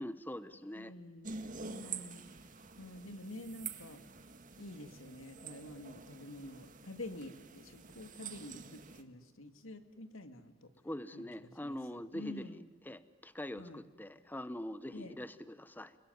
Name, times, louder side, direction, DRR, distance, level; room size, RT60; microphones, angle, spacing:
voice 1, 0.0-0.9 1.8-1.9 10.8-16.0, left 1 dB, 10° left, 13 dB, 0.8 m, -43 dB
voice 2, 0.7-1.3 1.7-2.2 2.8-4.0 4.6-10.7 11.1-12.6 13.5-13.8 14.9-15.2, left 1 dB, 85° left, 8 dB, 2.3 m, -48 dB
sound 1, 1.2-9.0, right 5 dB, 40° right, 1.9 m, -48 dB
29.5 x 21.0 x 9.3 m, 1.2 s
head